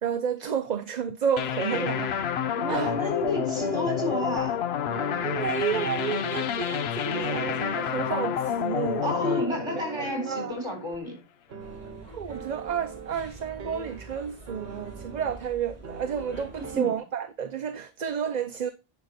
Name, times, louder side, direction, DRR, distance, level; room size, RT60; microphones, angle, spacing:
voice 1, 0.0-2.1 2.7-2.9 5.2-9.2 10.0-10.5 12.1-18.7, right 7 dB, 45° right, 0.8 m, -31 dB
sound 1, 1.4-10.7, left 8 dB, 75° left, 0.9 m, -29 dB
sound 2, 1.7-2.3 2.7-4.6 4.8-6.6 7.0-8.8 9.1-11.0 11.5-14.2 14.5-15.4 15.8-17.0, right 6 dB, 65° right, 1.2 m, -40 dB
voice 2, 2.5-4.6 9.0-11.2 16.6-17.0, left 1 dB, 25° right, 3.9 m, -31 dB
sound 3, 11.6-16.7, right 1 dB, 25° left, 5.1 m, -46 dB
9.9 x 5.8 x 4.2 m
omnidirectional pair, 1.1 m